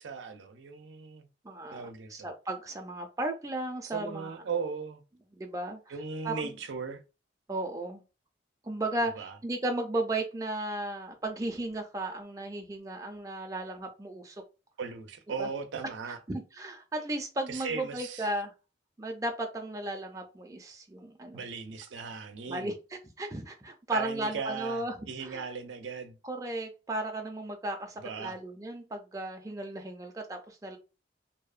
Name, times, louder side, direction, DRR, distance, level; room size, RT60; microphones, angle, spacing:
voice 1, 0.0-1.3 1.7-2.3 3.8-5.0 5.9-7.0 9.2-9.4 14.8-16.2 17.5-18.3 21.3-22.7 23.9-26.2 28.0-28.4, right 5 dB, 85° right, 0.5 m, -37 dB
voice 2, 1.4-1.8 2.1-4.3 5.3-5.9 6.2-6.5 7.5-8.0 8.6-14.4 15.4-15.5 16.1-18.5 19.0-21.4 22.5-24.9 25.2-25.4 26.2-30.8, right 2 dB, 20° right, 0.3 m, -35 dB
2.7 x 2.1 x 2.4 m
head